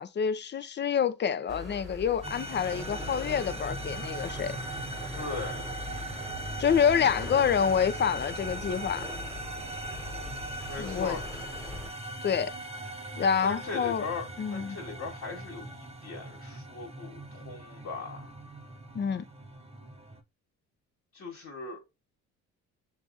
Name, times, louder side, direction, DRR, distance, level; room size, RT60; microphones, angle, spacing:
voice 1, 0.0-4.6 6.6-9.1 10.8-11.2 12.2-12.5 13.2-14.1 14.4-14.8 18.9-19.2, left 7 dB, 35° left, 0.6 m, -27 dB
sound 1, 1.5-11.9, left 2 dB, ahead, 1.5 m, -42 dB
sound 2, 2.2-20.2, right 1 dB, 20° right, 0.8 m, -40 dB
voice 2, 5.1-5.6 10.6-11.2 13.4-18.4 21.1-21.8, left 4 dB, 60° left, 1.5 m, -39 dB
6.7 x 2.4 x 2.5 m
cardioid pair, 90°, 30 cm